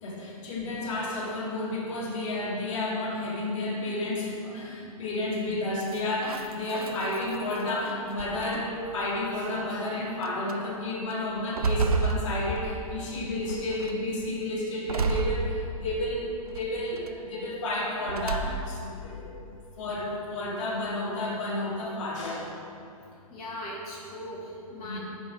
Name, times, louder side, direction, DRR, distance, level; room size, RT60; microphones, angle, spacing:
voice 1, 0.0-22.6 24.8-25.0, left 1 dB, 55° left, -3 dB, 2.1 m, -31 dB
sound 1, 5.8-7.7 8.2-8.9 9.7-9.8 10.2-10.6 11.1-13.0 13.5-14.0 14.9-16.0 16.5-17.1 18.0-18.9, right 3 dB, 80° right, 0.6 m, -31 dB
voice 2, 23.3-25.0, left 1 dB, 35° left, -5 dB, 1.6 m, -39 dB
9.7 x 5.0 x 5.2 m, 2.6 s
figure-of-eight pair, 115°, 19 cm